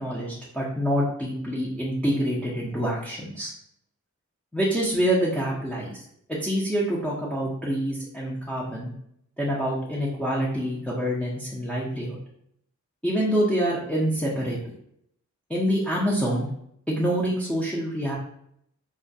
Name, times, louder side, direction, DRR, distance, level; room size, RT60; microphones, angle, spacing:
voice 1, 0.0-3.5 4.5-6.0 6.3-8.9 9.4-12.2 13.0-14.6 15.5-16.5 16.9-18.2, equal, 5° left, -6 dB, 0.5 m, -26 dB
2.2 x 2.1 x 2.6 m, 0.71 s
wide cardioid pair, 70°, 30 cm